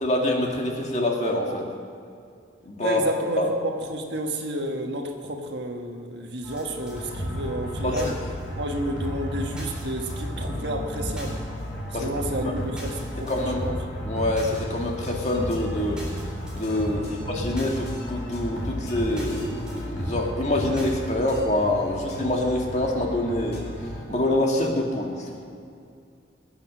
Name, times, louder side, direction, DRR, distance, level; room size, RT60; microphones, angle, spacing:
voice 1, 0.0-1.7 2.6-3.0 3.4-3.5 7.8-8.1 11.9-12.1 12.4-12.6 13.3-13.6 14.0-16.0 16.5-23.6 24.1-25.4, left 1 dB, 35° left, 0 dB, 2.0 m, -26 dB
voice 2, 2.8-8.2 8.5-11.4 12.0-13.8 16.9-17.2, right 1 dB, 60° right, 3 dB, 1.5 m, -31 dB
sound 1, 6.4-21.2, equal, 5° right, 4.0 m, -35 dB
sound 2, 6.9-24.1, equal, 55° left, 2.9 m, -37 dB
21.0 x 8.7 x 6.3 m, 2.4 s
head